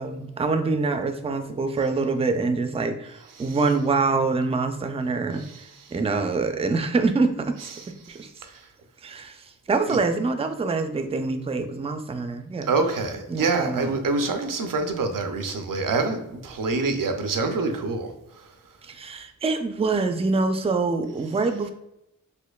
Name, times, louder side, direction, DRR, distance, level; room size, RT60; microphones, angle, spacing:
voice 1, 0.0-5.5 5.9-7.8 8.1-8.3 9.0-12.7 13.3-13.9 18.8-21.7, right 3 dB, 20° right, 7 dB, 0.3 m, -25 dB
voice 2, 12.7-18.1, right 3 dB, 90° right, 6 dB, 0.5 m, -25 dB
4.2 x 2.5 x 2.3 m, 0.85 s
cardioid pair, 45°, 32 cm